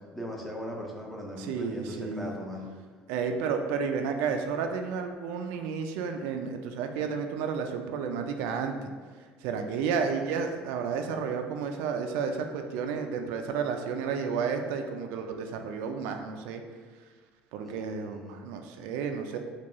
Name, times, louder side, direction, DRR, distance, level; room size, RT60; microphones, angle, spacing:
voice 1, 0.0-2.7 17.6-18.5, equal, ahead, -1 dB, 0.5 m, -39 dB
voice 2, 1.4-2.3 3.1-8.7 9.4-16.6 17.5-19.4, right 6 dB, 85° right, 5 dB, 0.3 m, -31 dB
4.5 x 2.3 x 2.9 m, 1.5 s
cardioid pair, 135°, 4 cm